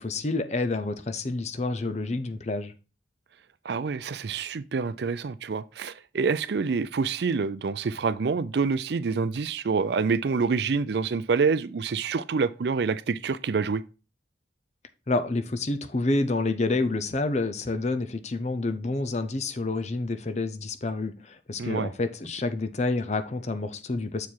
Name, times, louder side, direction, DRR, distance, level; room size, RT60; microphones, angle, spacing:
voice 1, 0.0-2.7 15.1-24.3, left 2 dB, 35° left, 0.6 m, -28 dB
voice 2, 3.6-13.8 21.6-21.9, right 5 dB, 60° right, 0.4 m, -27 dB
7.0 x 4.6 x 4.5 m
head